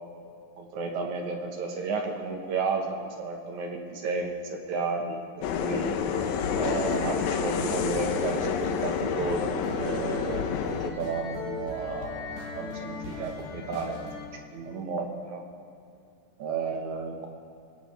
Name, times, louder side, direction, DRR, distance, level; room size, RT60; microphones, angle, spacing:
voice 1, 0.6-5.3 5.6-6.0 6.6-14.0 14.5-15.4 16.4-17.3, right 4 dB, 60° right, 2 dB, 2.3 m, -32 dB
sound 1, 5.4-10.9, left 7 dB, 85° left, 1.6 m, -29 dB
sound 2, 6.0-14.4, left 4 dB, 70° left, 3.6 m, -39 dB
21.0 x 16.5 x 3.4 m, 2.6 s
omnidirectional pair, 4.5 m